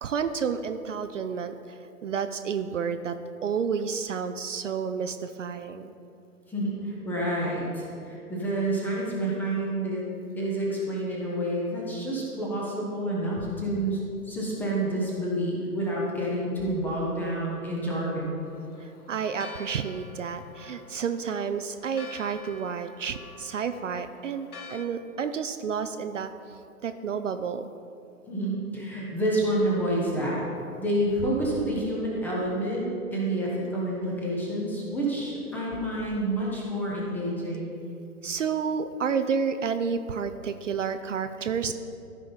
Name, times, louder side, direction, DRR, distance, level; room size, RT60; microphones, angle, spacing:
voice 1, 0.0-5.9 18.8-27.7 38.2-41.7, right 6 dB, 55° right, 9 dB, 0.5 m, -30 dB
voice 2, 6.5-10.0 10.3-18.3 28.3-30.4 30.8-37.7, right 1 dB, 5° left, -4 dB, 0.7 m, -28 dB
Church bell, 18.4-24.9, left 4 dB, 75° left, 1.0 m, -47 dB
14.0 x 5.1 x 4.0 m, 2.6 s
figure-of-eight pair, 130°, 46 cm